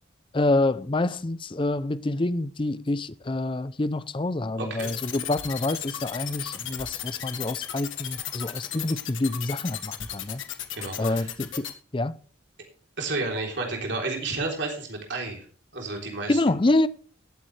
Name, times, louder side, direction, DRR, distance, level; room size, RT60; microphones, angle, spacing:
voice 1, 0.3-10.4 11.0-11.7 11.9-12.2 16.3-16.9, left 2 dB, 25° left, 0.5 m, -27 dB
voice 2, 4.6-4.9 10.7-11.3 13.0-15.5 15.7-16.4, right 3 dB, 60° right, 3.5 m, -31 dB
sound 1, 4.8-11.7, left 11 dB, 80° left, 1.5 m, -34 dB
17.5 x 8.5 x 3.3 m
head